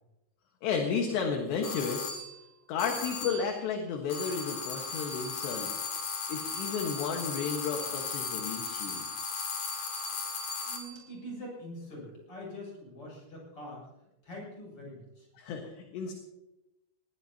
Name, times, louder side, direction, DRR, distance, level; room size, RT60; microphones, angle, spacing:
voice 1, 0.6-2.2 2.7-5.7 6.3-9.1 15.4-16.1, left 6 dB, 65° left, 2 dB, 3.4 m, -33 dB
sound 1, 1.6-2.3 2.8-3.5 4.1-11.0, left 5 dB, 50° left, 3.4 m, -36 dB
voice 2, 10.6-15.3, equal, 25° left, -2 dB, 8.7 m, -44 dB
20.5 x 20.0 x 2.9 m, 0.95 s
omnidirectional pair, 5.6 m